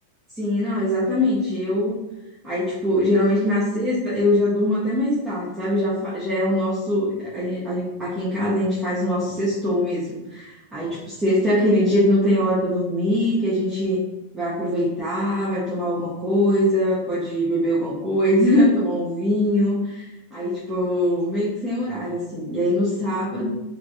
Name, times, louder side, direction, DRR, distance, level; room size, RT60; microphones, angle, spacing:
voice 1, 0.4-2.0 2.4-14.0 14.3-23.5, left 1 dB, 10° right, -9 dB, 0.6 m, -22 dB
2.9 x 2.5 x 2.2 m, 1.0 s
supercardioid pair, 160°, 0 cm